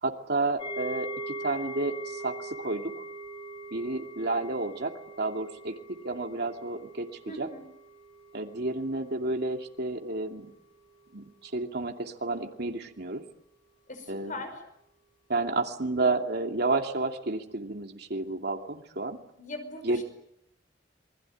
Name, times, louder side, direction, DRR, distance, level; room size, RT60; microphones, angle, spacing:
voice 1, 0.0-3.0 3.7-7.1 7.4-7.5 8.3-10.5 11.1-13.2 14.1-14.3 15.3-19.2 19.8-20.0, right 2 dB, 60° right, 3 dB, 2.6 m, -31 dB
sound 1, 0.6-9.7 10.0-10.2 10.7-10.8, right 1 dB, 30° left, 5.7 m, -41 dB
voice 2, 7.3-7.6 13.9-14.6 19.4-20.0, left 1 dB, 45° left, 8 dB, 5.5 m, -40 dB
28.0 x 21.5 x 9.2 m, 0.78 s
head